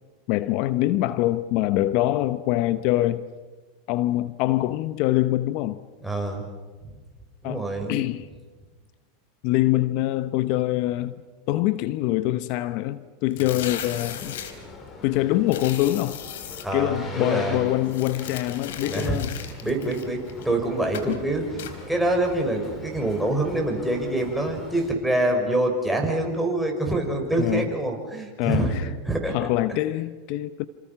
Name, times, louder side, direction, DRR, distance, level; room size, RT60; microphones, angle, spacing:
voice 1, 0.3-3.2 3.9-5.8 7.4-8.3 9.4-11.2 11.5-14.4 15.0-16.2 16.7-19.4 21.1-21.2 27.4-27.7 28.4-28.9 29.3-30.7, left 15 dB, 55° left, 14 dB, 0.9 m, -24 dB
voice 2, 6.0-6.4 7.4-8.0 16.6-17.6 18.9-19.2 19.6-20.2 20.4-28.7 29.1-29.5, right 1 dB, ahead, 1 dB, 5.9 m, -25 dB
sound 1, 13.3-14.5 15.5-16.6 17.8-20.5 20.9-21.2 21.6-21.7, left 10 dB, 80° left, 3.4 m, -37 dB
Boat Water vehicle, 13.5-24.9, left 3 dB, 30° left, 5.4 m, -42 dB
28.0 x 27.5 x 5.9 m, 1.4 s
hypercardioid pair, 115°, 0 cm